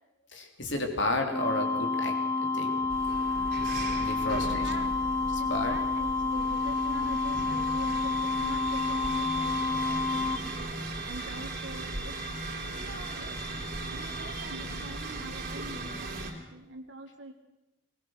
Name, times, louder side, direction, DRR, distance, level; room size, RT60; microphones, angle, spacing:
voice 1, 0.3-2.9 4.0-4.7 5.5-5.7 7.3-7.5, left 2 dB, 70° left, 4 dB, 3.3 m, -32 dB
sound 1, 1.3-10.4, left 3 dB, 10° left, 1.3 m, -29 dB
sound 2, 2.9-16.3, right 2 dB, 50° right, 3.8 m, -37 dB
voice 2, 4.3-5.0 5.4-10.6 11.0-12.2 12.7-13.4 13.9-17.3, right 2 dB, 70° right, 3 dB, 1.8 m, -45 dB
21.0 x 20.5 x 6.5 m, 0.96 s
head